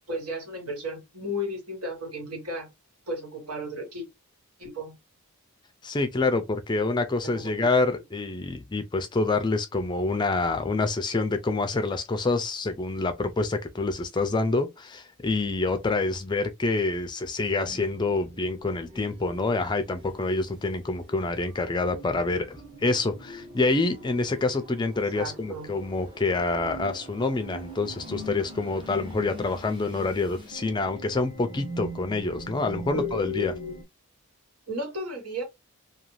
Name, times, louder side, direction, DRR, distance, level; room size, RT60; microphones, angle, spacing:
voice 1, 0.1-2.7 3.1-4.1 4.6-4.9 7.2-7.7 25.1-25.7 32.9-33.7 34.7-35.4, left 1 dB, 85° right, 1.5 m, -34 dB
voice 2, 5.8-33.5, left 3 dB, 20° left, 0.3 m, -27 dB
sound 1, 17.6-33.8, right 1 dB, 20° right, 0.7 m, -43 dB
2.5 x 2.3 x 3.1 m
head